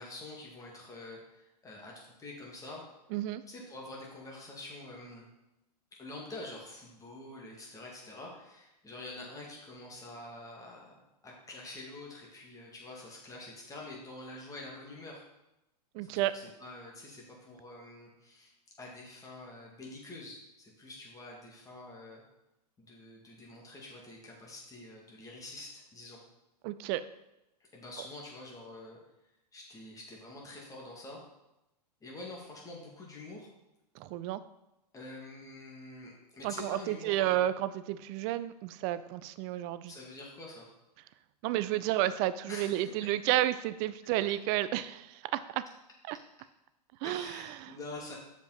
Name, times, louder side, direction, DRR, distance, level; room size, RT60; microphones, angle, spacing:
voice 1, 0.0-2.8 3.5-5.3 6.0-11.0 11.2-15.2 16.0-22.2 22.8-26.2 27.6-29.0 29.5-31.2 32.0-33.5 34.9-37.4 39.9-40.7 42.5-42.8 47.0-48.1, left 2 dB, 15° left, -2 dB, 2.0 m, -46 dB
voice 2, 3.1-3.4 15.9-16.3 26.6-27.0 34.0-34.4 36.4-39.9 41.4-45.6 46.1-46.2 47.0-47.7, right 14 dB, 40° right, 14 dB, 0.4 m, -31 dB
6.8 x 5.1 x 4.0 m, 0.91 s
hypercardioid pair, 115°, 21 cm